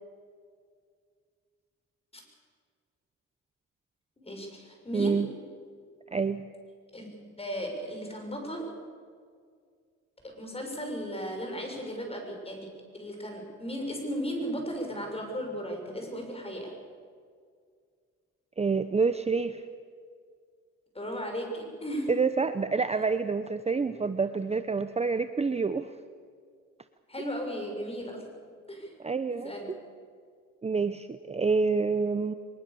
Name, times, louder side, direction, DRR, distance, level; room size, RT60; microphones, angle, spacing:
voice 1, 4.2-5.3 6.9-8.7 10.4-16.7 20.9-22.1 27.1-28.4 28.7-28.9 29.3-29.7, equal, 20° left, 2 dB, 7.0 m, -36 dB
voice 2, 4.9-5.3 6.1-6.4 18.6-19.6 22.1-25.9 29.0-29.8 30.6-32.3, right 4 dB, 20° right, 11 dB, 0.8 m, -27 dB
23.0 x 22.0 x 7.0 m, 2.1 s
cardioid pair, 90°, 30 cm